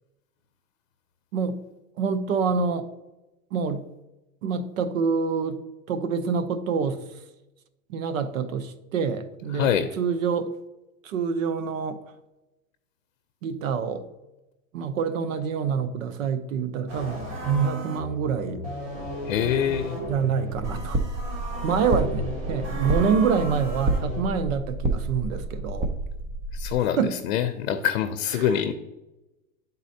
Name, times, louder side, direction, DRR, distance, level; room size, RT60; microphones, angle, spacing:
voice 1, 2.0-2.9 3.5-3.9 4.4-5.6 5.9-7.0 7.9-10.5 11.0-12.0 13.4-14.1 14.7-18.6 20.1-21.0 21.6-25.9 27.0-27.1 28.4-28.7, right 6 dB, 80° right, 0.8 m, -26 dB
voice 2, 9.5-9.9 19.3-20.0 26.5-27.0 27.2-28.7, left 9 dB, 70° left, 0.6 m, -24 dB
sound 1, 16.9-24.2, equal, 45° right, 2.2 m, -35 dB
sound 2, 20.5-26.7, right 2 dB, 15° right, 0.4 m, -29 dB
11.0 x 4.0 x 2.7 m
supercardioid pair, 135°, 39 cm